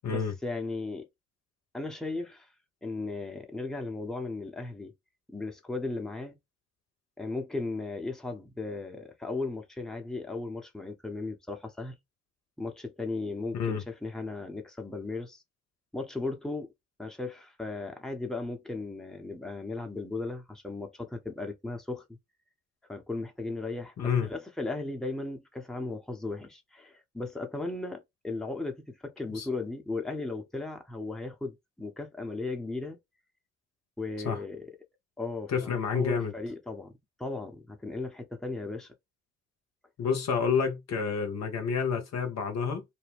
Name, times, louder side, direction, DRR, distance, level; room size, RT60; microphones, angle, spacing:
voice 1, 0.1-1.1 1.7-2.5 2.8-4.9 5.3-6.4 7.2-12.0 12.6-15.4 15.9-16.7 17.0-22.0 22.9-33.0 34.0-34.7 35.2-36.9 37.2-38.9, left 3 dB, ahead, 0.9 m, -36 dB
voice 2, 24.0-24.3 29.3-29.5 34.2-34.4 35.5-36.3 40.0-42.8, left 6 dB, 50° left, 0.8 m, -29 dB
2.6 x 2.1 x 3.4 m
hypercardioid pair, 50°, 34 cm